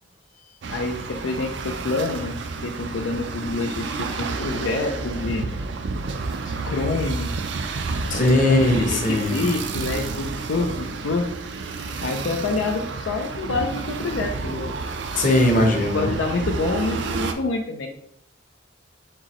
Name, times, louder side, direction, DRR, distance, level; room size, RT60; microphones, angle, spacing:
voice 1, 0.5-5.5 6.4-7.3 8.0-11.3 12.0-14.8 15.7-17.9, left 3 dB, 85° left, 3 dB, 0.5 m, -27 dB
sound 1, 0.6-17.3, right 4 dB, 65° right, 0.4 m, -30 dB
voice 2, 8.1-9.4 11.9-12.0 15.1-16.1, left 1 dB, 40° left, 1 dB, 0.9 m, -19 dB
4.5 x 3.8 x 3.0 m, 0.70 s
head